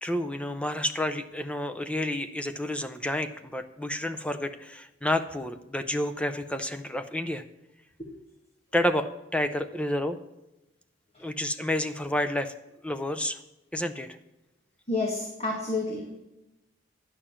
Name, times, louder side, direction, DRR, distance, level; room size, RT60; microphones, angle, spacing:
voice 1, 0.0-7.4 8.7-10.2 11.2-12.5 12.8-13.4 13.7-14.1, left 1 dB, 5° left, 8 dB, 0.5 m, -30 dB
voice 2, 14.9-16.2, left 2 dB, 35° left, -1 dB, 1.8 m, -29 dB
10.0 x 6.8 x 7.2 m, 0.94 s
head